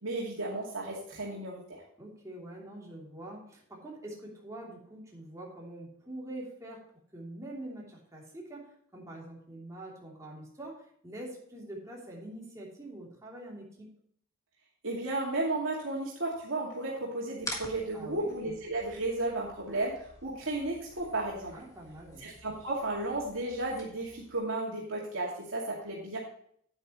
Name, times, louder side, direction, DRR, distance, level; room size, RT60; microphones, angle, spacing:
voice 1, 0.0-1.8 14.8-21.5 22.2-26.2, right 2 dB, 75° right, -4 dB, 2.4 m, -34 dB
voice 2, 2.0-6.8 7.1-13.9 17.9-18.3 21.5-22.3, right 1 dB, 15° right, -4 dB, 3.1 m, -45 dB
sound 1, 17.4-24.4, left 2 dB, 15° left, 1.7 m, -47 dB
9.6 x 9.3 x 3.1 m, 0.64 s
head